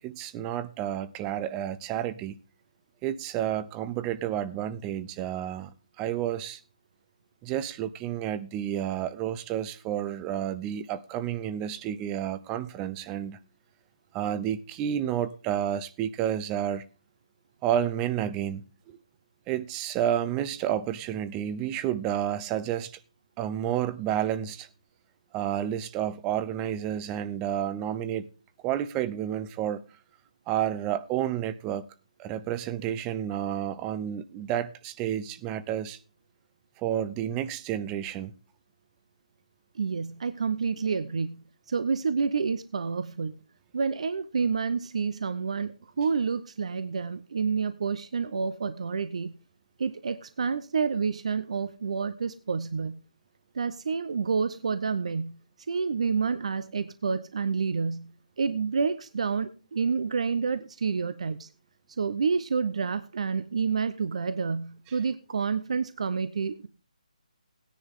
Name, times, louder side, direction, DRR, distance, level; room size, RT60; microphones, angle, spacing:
voice 1, 0.0-2.4 3.0-5.7 6.0-6.6 7.4-13.4 14.1-16.8 17.6-19.0 19.5-22.9 23.4-24.7 25.3-28.3 28.6-29.8 30.5-31.9 32.2-36.0 36.8-38.3, right 10 dB, 15° right, 0.5 m, -30 dB
voice 2, 39.7-43.4 43.7-49.3 49.8-52.9 53.5-55.4 55.7-61.5 62.0-66.7, right 5 dB, 55° right, 0.8 m, -29 dB
16.5 x 10.0 x 3.7 m
hypercardioid pair, 160°, 4 cm